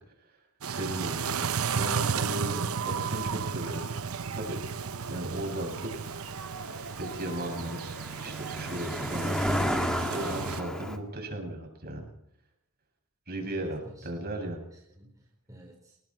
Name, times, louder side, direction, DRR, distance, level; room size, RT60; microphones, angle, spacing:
voice 1, 0.6-1.4 1.7-3.8 4.3-4.8 5.1-6.0 6.9-9.7 10.1-12.1 13.3-14.6, right 1 dB, 45° right, 2 dB, 7.5 m, -36 dB
sound 1, 0.6-10.6, right 6 dB, 70° right, 0.8 m, -33 dB
Cricket, 2.1-11.0, equal, 5° left, 2.2 m, -35 dB
voice 2, 13.4-14.2 14.7-16.0, right 1 dB, 15° right, -1 dB, 4.4 m, -52 dB
29.0 x 20.5 x 4.5 m, 0.78 s
head